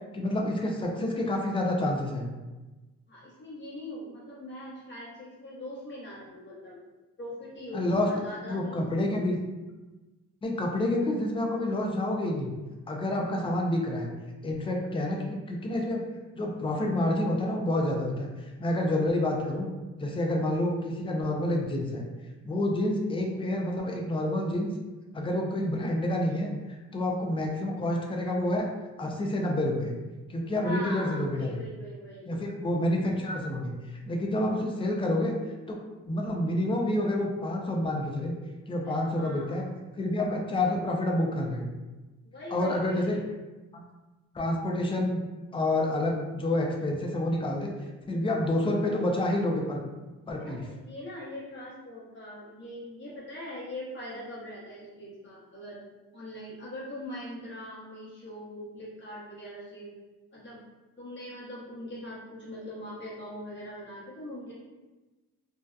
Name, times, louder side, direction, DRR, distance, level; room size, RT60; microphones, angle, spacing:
voice 1, 0.1-2.3 7.7-8.1 8.5-9.5 10.4-12.5 12.9-14.1 14.4-16.0 16.3-19.7 20.0-22.0 22.4-24.7 25.1-26.5 26.9-28.7 29.0-29.9 30.3-31.6 32.3-35.3 35.7-35.8 36.0-38.3 38.7-39.7 40.0-41.7 42.5-43.2 43.7-43.9 44.3-45.2 45.5-47.7 48.1-49.8 50.3-50.6, left 1 dB, 20° left, 0 dB, 0.4 m, -28 dB
voice 2, 3.1-6.8 7.2-8.9 30.6-32.4 38.8-39.6 42.2-43.3 50.4-55.8 56.1-59.9 60.3-60.6 61.0-64.5, left 1 dB, 40° left, -7 dB, 0.9 m, -41 dB
2.7 x 2.1 x 2.3 m, 1.2 s
cardioid pair, 90°, 30 cm